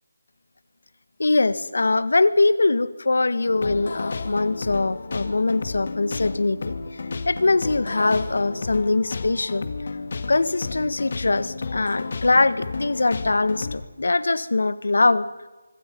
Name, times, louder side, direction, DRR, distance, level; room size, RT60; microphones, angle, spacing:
voice 1, 1.2-6.7 7.3-9.7 10.3-15.3, left 3 dB, 70° left, 16 dB, 1.6 m, -22 dB
sound 1, 3.5-13.8, left 4 dB, 40° left, 2.1 m, -32 dB
25.5 x 24.5 x 5.4 m, 1.2 s
figure-of-eight pair, 175°, 0 cm